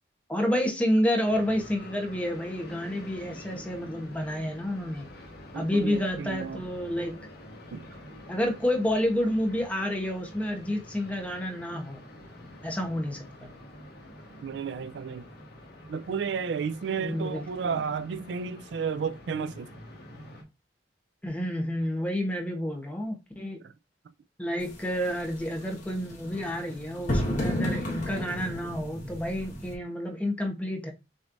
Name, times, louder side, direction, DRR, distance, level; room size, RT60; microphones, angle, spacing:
voice 1, 0.3-5.1 5.5-7.2 8.3-12.0 12.6-13.5 17.0-17.5 21.2-23.6 24.4-30.9, equal, 10° left, 1.0 m, -29 dB
sound 1, 1.2-20.4, left 1 dB, 60° left, 1.7 m, -47 dB
voice 2, 5.5-6.6 7.7-7.9 14.4-15.2 15.9-19.7, right 6 dB, 75° right, 0.4 m, -32 dB
sound 2, 24.6-29.7, equal, 45° left, 1.6 m, -33 dB
6.3 x 3.1 x 2.6 m
head